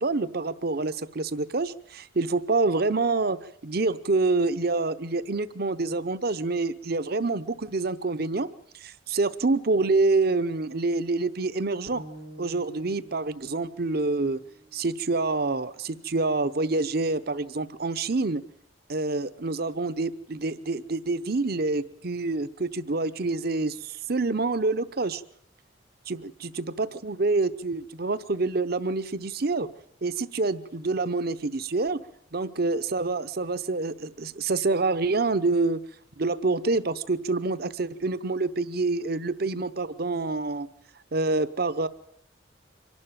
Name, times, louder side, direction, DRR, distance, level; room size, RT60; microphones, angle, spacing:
voice 1, 0.0-3.4 3.6-8.5 8.8-12.0 12.4-14.4 14.7-18.4 18.9-25.2 26.1-26.3 26.6-29.7 30.0-32.0 32.3-35.8 36.2-40.7 41.1-41.9, right 3 dB, 50° right, 13 dB, 0.8 m, -27 dB
sound 1, 11.9-16.0, right 1 dB, 85° left, 3.8 m, -49 dB
25.0 x 12.0 x 9.0 m, 0.71 s
head